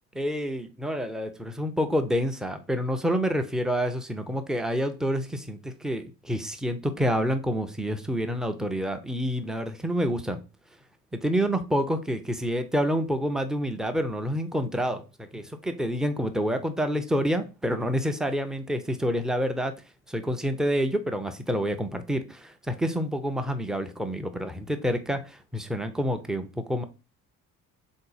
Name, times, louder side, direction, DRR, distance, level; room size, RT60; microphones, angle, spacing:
voice 1, 0.1-10.4 11.1-19.7 20.1-26.8, equal, ahead, 0.4 m, -28 dB
3.9 x 2.8 x 3.8 m
figure-of-eight pair, 50°, 44 cm